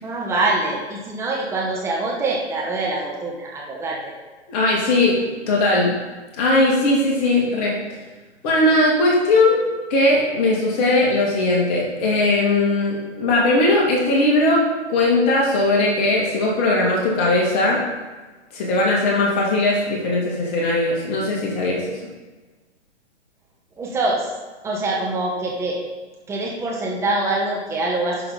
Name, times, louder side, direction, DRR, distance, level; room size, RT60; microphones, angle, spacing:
voice 1, 0.0-4.1 23.8-24.3 24.6-25.8 26.3-28.3, right 2 dB, 10° right, -3 dB, 1.2 m, -24 dB
voice 2, 4.5-5.2 5.5-6.0 6.4-7.8 8.4-9.6 9.9-14.6 14.9-17.8 18.5-22.0, left 2 dB, 35° left, -3 dB, 2.1 m, -19 dB
11.5 x 6.0 x 4.0 m, 1.3 s
hypercardioid pair, 130°, 35 cm